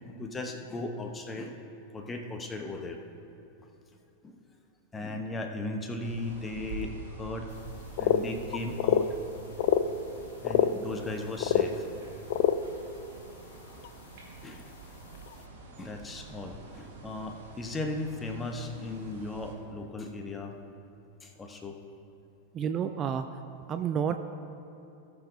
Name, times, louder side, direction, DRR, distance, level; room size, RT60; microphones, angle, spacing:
voice 1, 0.0-1.6 1.9-3.0 3.9-4.0 4.2-4.4 4.9-7.5 8.0-9.1 10.4-11.9 14.2-14.7 15.1-15.2 15.8-20.6 21.2-21.8, left 2 dB, 15° left, 4 dB, 1.0 m, -37 dB
sound 1, 6.0-19.5, right 3 dB, 55° right, 2.0 m, -47 dB
sound 2, 8.0-8.2 8.5-9.0 9.6-9.8 10.4-10.7 11.4-11.7 12.3-12.5 13.8-13.9 15.3-15.4, left 10 dB, 50° left, 0.4 m, -24 dB
voice 2, 22.5-23.3 23.7-24.2, right 8 dB, 30° right, 8 dB, 0.4 m, -29 dB
18.0 x 6.8 x 2.7 m, 2.9 s
figure-of-eight pair, 90°, 0 cm